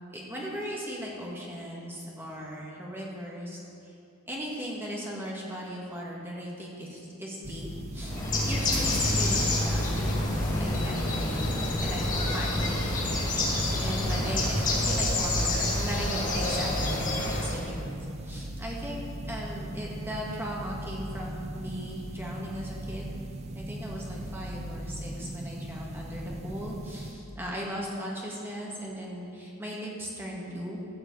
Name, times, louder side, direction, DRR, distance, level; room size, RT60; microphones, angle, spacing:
voice 1, 0.1-3.6 3.8-3.9 4.3-11.5 11.8-12.9 13.8-18.0 18.2-23.1 23.5-30.8, equal, 10° right, -4 dB, 1.9 m, -38 dB
sound 1, 7.4-27.1, right 1 dB, 30° right, 0.6 m, -38 dB
Bird, 8.0-17.7, left 1 dB, 35° left, 2.1 m, -28 dB
sound 2, 8.1-15.0, left 1 dB, 15° left, 1.2 m, -35 dB
14.0 x 4.9 x 7.8 m, 2.8 s
head